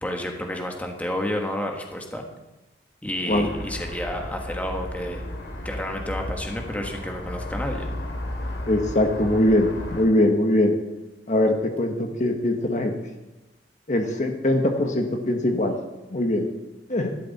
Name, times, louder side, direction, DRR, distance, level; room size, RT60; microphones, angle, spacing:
voice 1, 0.0-2.3 3.0-5.2 5.6-7.9, left 1 dB, 10° left, 2 dB, 1.5 m, -30 dB
sound 1, 3.3-10.1, left 1 dB, 75° left, 2.6 m, -34 dB
voice 2, 8.7-10.8 11.3-12.9 13.9-15.8 16.1-16.5 16.9-17.1, left 1 dB, 40° left, 4 dB, 1.3 m, -22 dB
15.0 x 12.5 x 4.2 m, 1.0 s
head